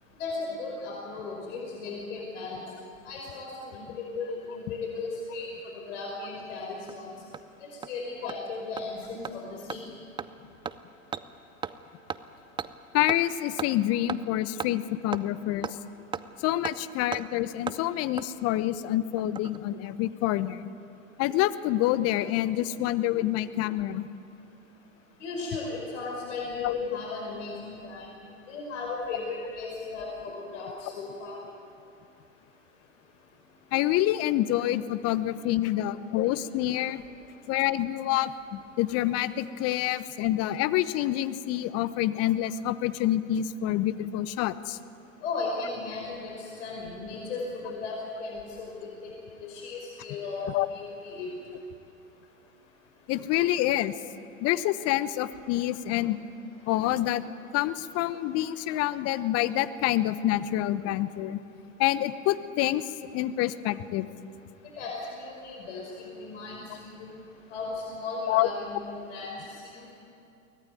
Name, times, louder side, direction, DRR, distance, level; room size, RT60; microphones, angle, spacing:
voice 1, 0.2-2.6 3.1-5.5 5.7-7.1 7.7-9.8 25.2-28.1 28.5-31.4 45.2-49.1 49.4-51.3 64.8-67.1 67.5-69.4 69.6-69.9, left 3 dB, 60° left, -1 dB, 5.5 m, -36 dB
Hammer, 6.4-6.5 6.9-7.0 7.3-7.4 7.8-7.9 8.3-8.4 8.8-8.9 9.2-9.3 9.7-9.8 10.2-10.3 10.6-10.8 11.1-11.2 11.6-11.8 12.1-12.2 12.6-12.7 13.1-13.2 13.6-13.7 14.1-14.2 14.6-14.7 15.1-15.2 15.6-15.7 16.1-16.2 16.6-16.8 17.1-17.2 17.7-17.8 18.2-18.3 19.2-19.6 19.8-19.9, right 7 dB, 10° right, 0.5 m, -34 dB
voice 2, 12.9-15.8 16.4-20.7 21.2-24.1 26.6-26.7 33.7-37.0 37.5-44.8 50.4-50.7 53.1-54.0 54.4-56.2 56.7-57.2 57.5-61.4 61.8-64.1 68.3-68.5, left 14 dB, 35° left, 14 dB, 1.0 m, -27 dB
23.5 x 18.5 x 9.3 m, 2.7 s
figure-of-eight pair, 95°, 40 cm